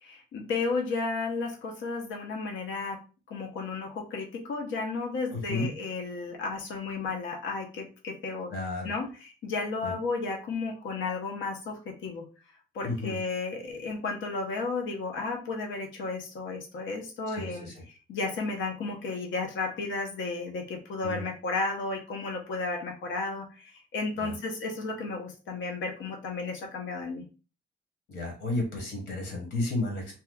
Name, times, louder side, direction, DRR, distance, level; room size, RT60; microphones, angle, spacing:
voice 1, 0.0-3.0 3.3-8.5 8.8-12.3 12.7-17.7 18.1-27.2, left 3 dB, 90° left, 2 dB, 0.8 m, -33 dB
voice 2, 5.3-5.7 8.5-8.9 9.8-9.9 12.8-13.2 17.3-17.7 21.0-21.2 24.2-24.3 28.1-30.2, left 2 dB, 70° left, 1 dB, 1.2 m, -32 dB
2.9 x 2.3 x 3.5 m, 0.34 s
wide cardioid pair, 170°, 19 cm